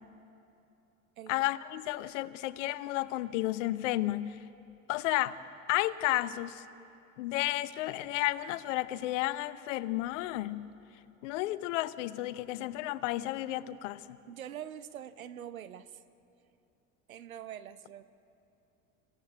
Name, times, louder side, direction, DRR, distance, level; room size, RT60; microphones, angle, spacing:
voice 1, 1.3-4.4 4.9-5.4 5.7-6.6 7.2-10.7 11.2-14.2, left 16 dB, 65° left, 16 dB, 0.9 m, -32 dB
voice 2, 14.3-16.0 17.1-18.0, right 10 dB, 85° right, 13 dB, 0.9 m, -44 dB
25.5 x 16.5 x 8.3 m, 2.8 s
figure-of-eight pair, 75°, 41 cm